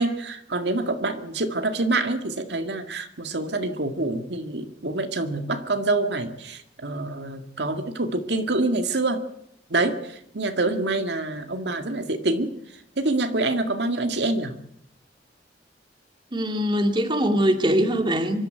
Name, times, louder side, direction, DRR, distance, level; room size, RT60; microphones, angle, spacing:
voice 1, 0.0-9.2 9.7-12.5 13.0-14.6, right 2 dB, 70° right, 6 dB, 2.1 m, -26 dB
voice 2, 16.3-18.4, equal, 25° right, 6 dB, 2.3 m, -22 dB
25.0 x 13.0 x 9.3 m, 0.76 s
head